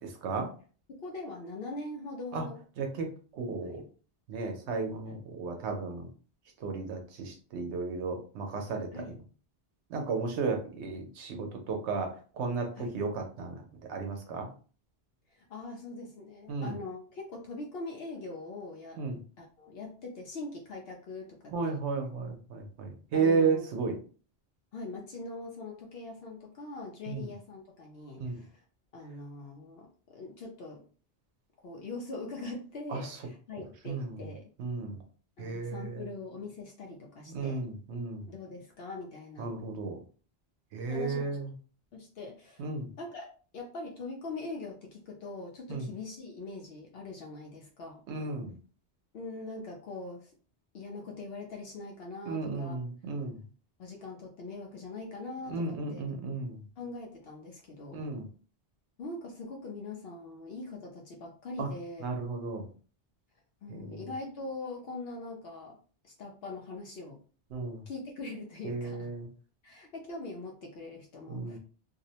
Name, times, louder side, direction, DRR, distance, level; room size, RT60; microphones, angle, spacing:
voice 1, 0.9-2.6 3.6-3.9 5.0-5.2 8.9-9.1 12.8-12.9 15.3-19.0 19.4-21.8 23.1-23.6 24.7-28.6 28.9-30.8 31.6-34.5 35.4-37.6 38.3-39.6 40.9-41.4 41.9-42.7 43.0-48.0 49.1-50.3 50.7-52.8 53.8-56.0 56.8-58.0 59.0-62.2 63.6-65.8 66.0-67.2 67.9-69.1 69.6-71.6, left 3 dB, 65° left, 0 dB, 0.8 m, -42 dB
voice 2, 2.8-3.1 3.3-3.8 4.3-6.1 6.6-9.2 9.9-13.6 13.9-14.5 16.5-16.8 19.0-19.2 21.5-24.0 27.1-27.2 28.2-28.4 32.9-33.2 33.6-34.2 34.6-35.0 35.4-36.0 37.3-38.3 39.4-40.0 40.7-41.5 42.6-42.9 45.7-45.9 48.1-48.6 52.3-53.4 55.5-56.6 57.9-58.2 61.6-61.7 62.0-62.7 63.7-64.0 67.5-67.8 68.6-69.3 71.3-71.6, right 4 dB, 80° right, 3 dB, 0.9 m, -33 dB
2.5 x 2.0 x 2.7 m, 0.39 s
omnidirectional pair, 1.1 m